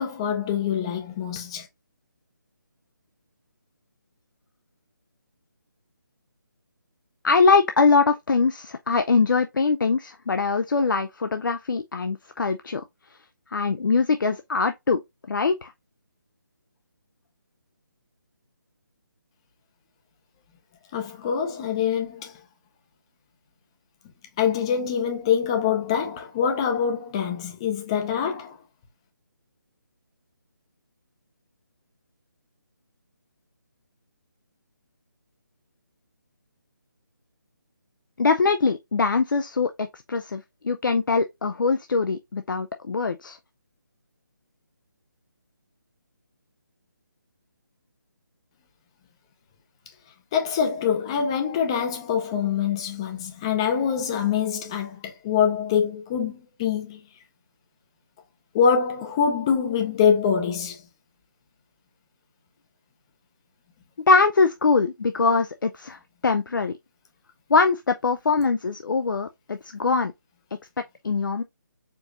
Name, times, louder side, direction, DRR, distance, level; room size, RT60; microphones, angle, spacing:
voice 1, 0.0-1.7 20.9-22.3 24.4-28.6 50.3-57.0 58.5-60.8, left 7 dB, 15° left, 0.5 m, -24 dB
voice 2, 7.2-12.8 13.5-15.0 15.3-15.7 38.2-43.4 64.1-66.7 67.5-70.1 71.0-71.4, left 4 dB, 75° left, 0.4 m, -22 dB
4.5 x 2.9 x 2.4 m
figure-of-eight pair, 165°, 11 cm